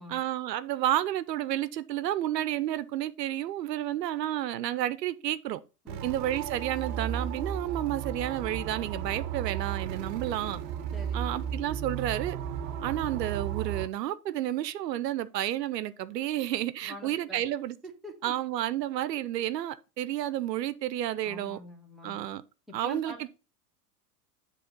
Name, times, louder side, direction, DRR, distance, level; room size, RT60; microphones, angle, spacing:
voice 1, 0.1-5.6 6.0-10.6 11.1-12.4 12.8-17.8 18.2-21.6 22.0-22.4 22.7-23.3, right 12 dB, 90° right, 0.7 m, -31 dB
sound 1, 5.9-13.9, right 8 dB, 50° right, 0.8 m, -34 dB
voice 2, 10.9-11.4 16.8-17.4 18.0-18.3 21.2-22.3 22.8-23.3, equal, ahead, 1.5 m, -45 dB
7.8 x 3.2 x 5.2 m
hypercardioid pair, 110°, 48 cm